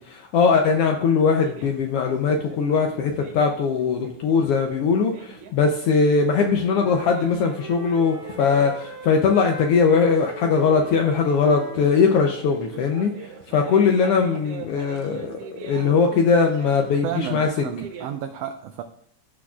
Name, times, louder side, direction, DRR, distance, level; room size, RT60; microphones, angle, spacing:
voice 1, 0.1-13.1 13.5-17.5, left 5 dB, 85° left, 3 dB, 1.3 m, -20 dB
sound 1, 1.4-18.1, right 7 dB, 70° right, 1.6 m, -43 dB
Wind instrument woodwind instrument, 5.9-12.7, equal, 15° right, 1.5 m, -41 dB
voice 2, 17.0-18.8, right 9 dB, 85° right, 8 dB, 1.4 m, -31 dB
14.5 x 6.2 x 2.4 m, 0.68 s
omnidirectional pair, 3.4 m